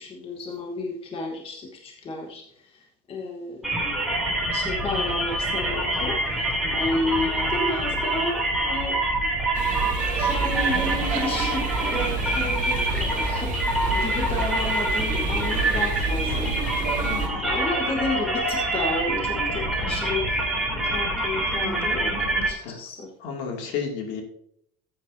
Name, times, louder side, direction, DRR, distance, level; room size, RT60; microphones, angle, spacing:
voice 1, 0.0-3.7 4.3-9.0 10.2-13.5 13.9-16.5 17.4-22.1 22.5-23.1, left 2 dB, 25° left, 1 dB, 1.3 m, -32 dB
sound 1, 3.6-22.5, right 1 dB, ahead, 2.9 m, -26 dB
sound 2, 9.5-17.3, right 5 dB, 40° right, 2.1 m, -29 dB
voice 2, 17.0-17.4 22.6-22.8 23.2-24.2, left 6 dB, 65° left, 2 dB, 2.5 m, -32 dB
13.5 x 8.7 x 2.7 m, 0.72 s
cardioid pair, 140°, 20 cm